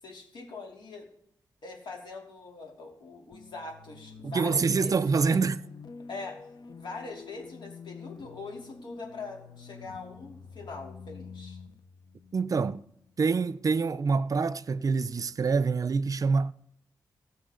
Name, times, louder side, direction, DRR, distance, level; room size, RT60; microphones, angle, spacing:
voice 1, 0.0-1.1 1.6-5.4 6.1-6.4 6.8-11.6, left 3 dB, 80° left, 3.2 m, -42 dB
sound 1, 3.3-13.2, left 5 dB, 65° left, 0.9 m, -48 dB
voice 2, 4.2-5.6 12.3-12.8 13.2-16.5, right 4 dB, 50° right, 0.5 m, -26 dB
19.5 x 6.9 x 3.8 m
cardioid pair, 80°, 8 cm